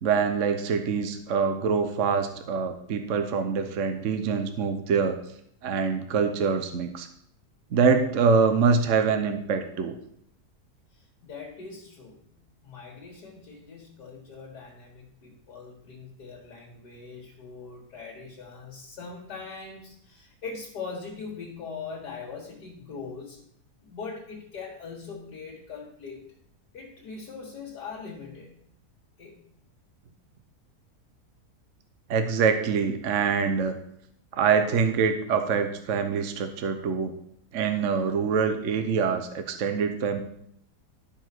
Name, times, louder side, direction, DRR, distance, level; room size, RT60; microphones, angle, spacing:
voice 1, 0.0-5.2 5.6-7.1 7.7-9.9 32.1-33.7 34.3-37.1 37.5-40.2, right 5 dB, 55° right, 7 dB, 1.0 m, -25 dB
voice 2, 10.9-23.4 23.9-26.2 26.7-28.6 29.2-29.5, left 5 dB, 80° left, -3 dB, 2.2 m, -41 dB
12.0 x 4.9 x 6.0 m, 0.69 s
omnidirectional pair, 1.7 m